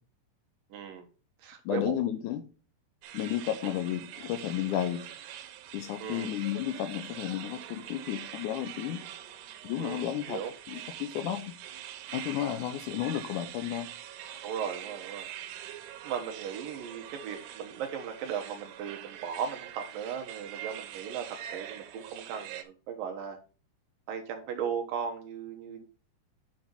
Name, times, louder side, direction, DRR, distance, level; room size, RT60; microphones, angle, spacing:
voice 1, 0.7-1.1 1.4-2.0 6.0-6.3 9.8-10.5 14.4-15.3 16.0-23.4 24.1-25.8, right 7 dB, 75° right, 5 dB, 2.4 m, -37 dB
voice 2, 1.7-2.4 3.1-5.0 5.7-9.0 9.6-10.4 10.7-11.5 12.1-13.9, left 11 dB, 90° left, 9 dB, 1.8 m, -32 dB
sound 1, 3.0-22.6, right 11 dB, 90° right, 3.1 m, -44 dB
9.4 x 5.0 x 3.9 m, 0.34 s
omnidirectional pair, 4.7 m